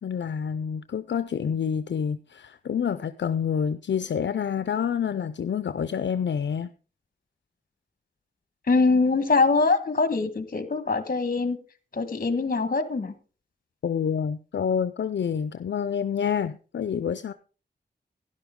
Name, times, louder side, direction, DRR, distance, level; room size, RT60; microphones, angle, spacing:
voice 1, 0.0-6.7 13.8-17.3, left 7 dB, 75° left, 0.5 m, -28 dB
voice 2, 8.7-11.6 11.9-13.1, left 3 dB, 50° left, 1.4 m, -23 dB
12.0 x 11.0 x 3.7 m
wide cardioid pair, 65°, 19 cm